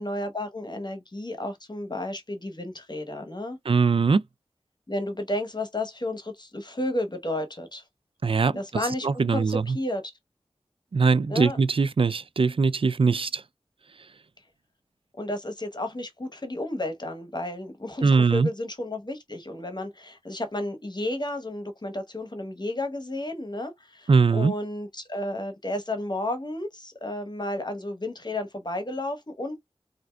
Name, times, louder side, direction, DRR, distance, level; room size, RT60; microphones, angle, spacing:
voice 1, 0.0-3.6 4.9-7.8 8.5-10.1 11.3-11.6 15.2-29.7, left 1 dB, 45° left, 1.0 m, -32 dB
voice 2, 3.7-4.2 8.2-8.5 9.0-9.6 10.9-13.4 18.0-18.5 24.1-24.5, right 4 dB, 60° right, 0.4 m, -21 dB
4.1 x 2.6 x 2.2 m
wide cardioid pair, 45°, 11 cm